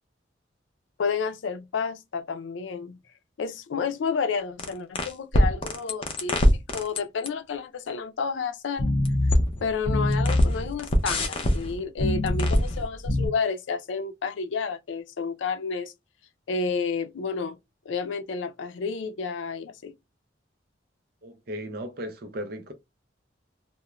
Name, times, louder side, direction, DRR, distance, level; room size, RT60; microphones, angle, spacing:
voice 1, 1.0-3.0 3.4-6.4 6.7-8.9 9.6-15.9 16.5-17.6 17.9-19.9, left 5 dB, 85° left, 0.4 m, -30 dB
sound 1, 4.6-7.3 8.8-13.3, left 1 dB, 30° left, 0.5 m, -23 dB
voice 2, 21.2-22.7, equal, 55° right, 0.5 m, -36 dB
2.3 x 2.0 x 3.0 m
head